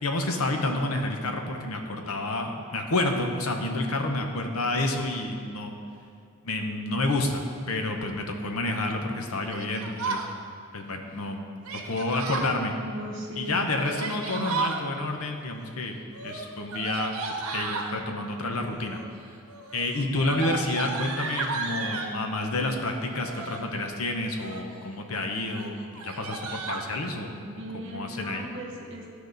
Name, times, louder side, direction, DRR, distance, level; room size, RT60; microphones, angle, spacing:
voice 1, 0.0-5.8 6.4-7.4 7.7-10.3 10.7-11.5 11.8-12.7 13.4-16.0 16.2-19.0 19.7-27.3 27.7-28.5, left 2 dB, 80° left, 4 dB, 0.9 m, -29 dB
Yell, 9.5-10.3 11.6-12.5 13.7-14.8 16.1-17.9 18.8-19.2 19.5-22.1 23.1-23.7 24.2-24.7 25.1-25.3 25.5-25.6 25.9-26.9, right 4 dB, 85° right, 0.9 m, -34 dB
voice 2, 12.8-13.6 27.4-29.1, right 1 dB, 55° right, 0 dB, 1.3 m, -38 dB
13.0 x 4.8 x 3.9 m, 2.3 s
head